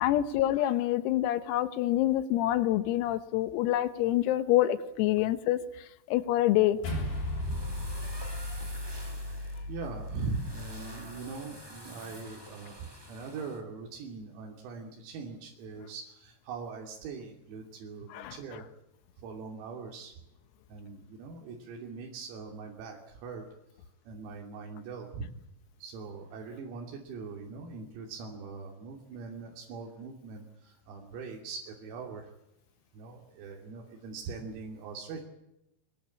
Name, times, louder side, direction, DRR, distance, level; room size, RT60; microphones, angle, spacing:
voice 1, 0.0-6.8 18.1-18.6, left 14 dB, 85° left, 12 dB, 4.0 m, -27 dB
sound 1, 6.7-13.6, equal, 5° right, 2.9 m, -48 dB
sound 2, 6.8-11.4, left 1 dB, 60° left, 9.1 m, -36 dB
voice 2, 7.3-7.8 9.7-18.7 19.2-20.1 20.7-23.5 24.1-25.3 25.8-32.3 32.9-35.2, right 4 dB, 85° right, 0 dB, 5.7 m, -41 dB
25.0 x 21.5 x 8.6 m, 0.87 s
omnidirectional pair, 6.0 m